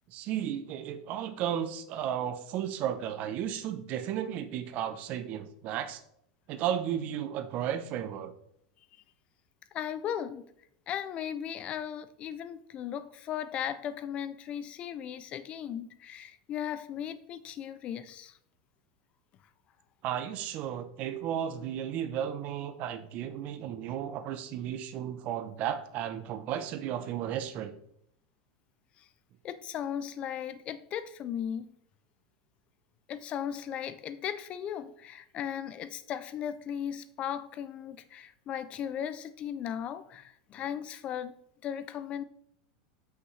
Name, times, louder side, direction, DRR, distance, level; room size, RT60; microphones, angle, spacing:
voice 1, 0.1-6.0 6.5-8.3 20.0-27.8, right 10 dB, 40° right, 10 dB, 0.6 m, -34 dB
voice 2, 9.7-10.4 10.9-18.4 29.0-29.1 29.4-31.7 33.1-41.3 41.6-42.2, left 9 dB, 30° left, 13 dB, 0.4 m, -37 dB
6.1 x 5.7 x 3.2 m, 0.70 s
supercardioid pair, 155°, 4 cm